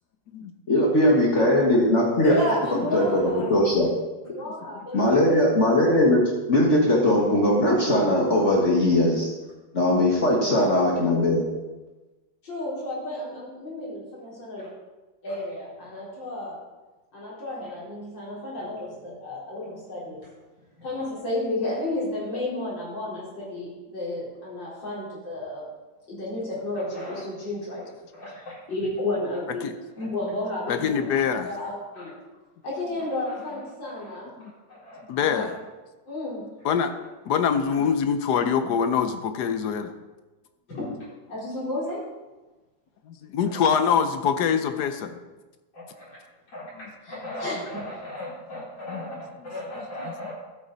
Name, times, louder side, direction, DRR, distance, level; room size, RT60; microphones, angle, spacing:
voice 1, 0.7-2.3 2.9-3.9 4.9-6.2 6.5-9.3 9.7-11.4, left 1 dB, 40° left, -2 dB, 1.8 m, -20 dB
voice 2, 2.2-3.6 4.3-5.4 10.6-10.8 12.4-14.7 15.2-16.6 17.1-20.3 20.8-25.6 26.1-29.7 30.0-31.1 31.4-32.1 32.6-34.3 34.7-35.0 35.3-35.5 36.1-36.4 40.7-40.9 41.3-42.0 43.5-43.9 45.7-46.2 46.5-50.3, left 1 dB, 85° left, -6 dB, 4.8 m, -32 dB
voice 3, 30.7-31.5 34.4-34.5 35.1-35.5 36.6-36.9 37.3-39.9 43.1-45.2 46.8-46.9 48.9-49.0 49.4-49.5 50.0-50.1, left 7 dB, 70° left, 9 dB, 1.2 m, -24 dB
13.0 x 8.3 x 4.0 m, 1.1 s
omnidirectional pair, 2.0 m